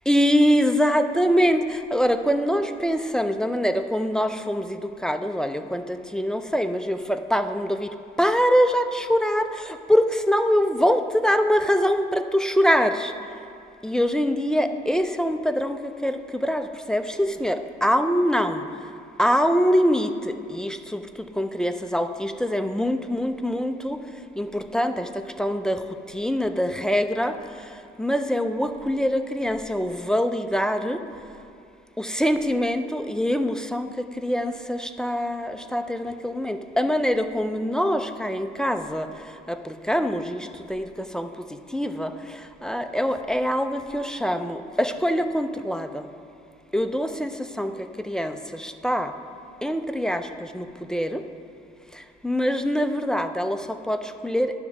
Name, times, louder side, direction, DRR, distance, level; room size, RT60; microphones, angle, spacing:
voice 1, 0.1-13.1 13.8-18.6 19.2-21.0 21.4-24.0 24.4-25.8 26.1-27.4 28.0-31.0 32.0-33.9 34.2-39.1 39.5-40.9 41.1-41.3 41.7-46.0 46.7-47.3 47.6-47.7 48.0-49.1 49.6-51.2 52.2-54.5, equal, 5° left, 8 dB, 0.3 m, -24 dB
10.5 x 3.6 x 5.9 m, 2.5 s
cardioid pair, 110°, 17 cm